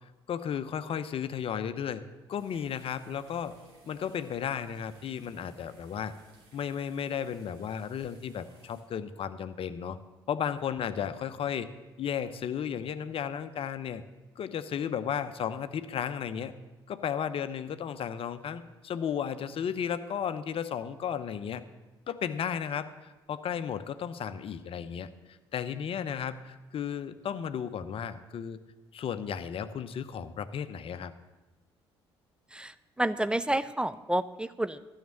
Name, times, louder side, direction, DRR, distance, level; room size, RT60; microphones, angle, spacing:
voice 1, 0.3-2.0 2.3-3.5 3.8-6.1 6.5-10.0 10.3-11.7 12.0-14.0 14.4-16.5 16.9-21.6 22.1-25.1 25.5-28.6 28.9-31.1, left 8 dB, 45° left, 13 dB, 0.7 m, -34 dB
sound 1, 2.3-8.8, right 3 dB, 70° right, 2.6 m, -59 dB
voice 2, 32.5-34.8, right 1 dB, 5° right, 14 dB, 0.5 m, -30 dB
12.5 x 6.6 x 7.5 m, 1.1 s
figure-of-eight pair, 50°, 13 cm